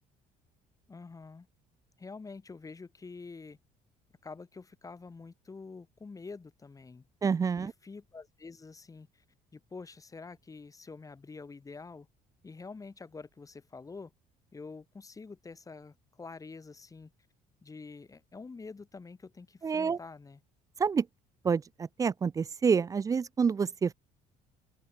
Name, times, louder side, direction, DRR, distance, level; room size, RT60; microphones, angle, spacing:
voice 1, 0.9-1.5 2.0-3.6 4.2-7.1 7.6-9.2 9.5-12.1 12.4-14.1 14.5-17.1 17.6-20.4, left 4 dB, 20° left, 6.0 m, -47 dB
voice 2, 7.2-7.7 19.6-20.0 20.8-21.1 21.4-23.9, right 6 dB, 20° right, 0.4 m, -28 dB
open air
cardioid pair, 125°, 16 cm